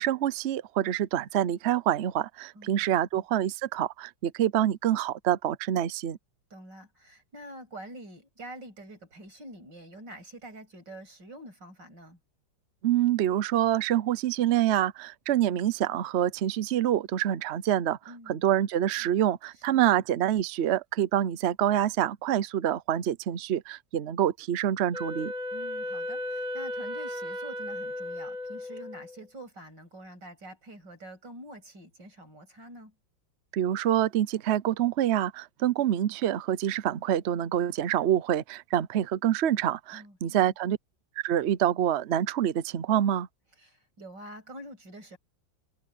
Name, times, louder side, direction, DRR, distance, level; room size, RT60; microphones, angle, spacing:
voice 1, 0.0-6.2 12.8-18.0 18.3-25.3 33.5-40.8 41.2-43.3, right 11 dB, 85° right, 0.5 m, -26 dB
voice 2, 2.5-3.2 6.5-12.2 18.1-18.4 19.7-19.8 25.5-32.9 39.9-40.5 43.6-45.2, right 1 dB, 60° right, 8.9 m, -46 dB
Wind instrument woodwind instrument, 24.9-29.2, left 1 dB, 25° right, 2.3 m, -35 dB
omnidirectional pair, 2.1 m